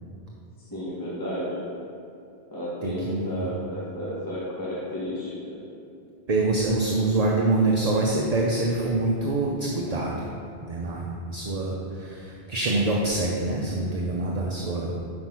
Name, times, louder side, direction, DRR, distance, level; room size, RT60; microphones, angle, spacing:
voice 1, 0.6-1.6 2.5-5.6, equal, 20° left, -8 dB, 1.3 m, -32 dB
voice 2, 2.8-3.5 6.3-10.3 10.6-14.9, right 2 dB, 45° right, -2 dB, 0.7 m, -25 dB
5.9 x 5.3 x 5.9 m, 2.6 s
omnidirectional pair, 1.1 m